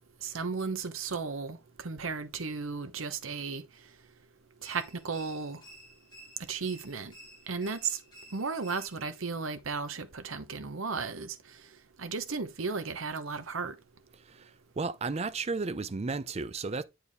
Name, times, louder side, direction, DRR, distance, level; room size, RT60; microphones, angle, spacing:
voice 1, 0.2-3.6 4.6-5.6 6.5-7.1 7.5-8.0 8.3-11.4 12.0-13.8, right 4 dB, 75° right, 0.9 m, -35 dB
sound 1, 4.6-9.2, right 1 dB, 20° left, 3.3 m, -53 dB
voice 2, 14.3-16.8, right 4 dB, 30° right, 0.5 m, -34 dB
8.5 x 4.6 x 3.5 m
head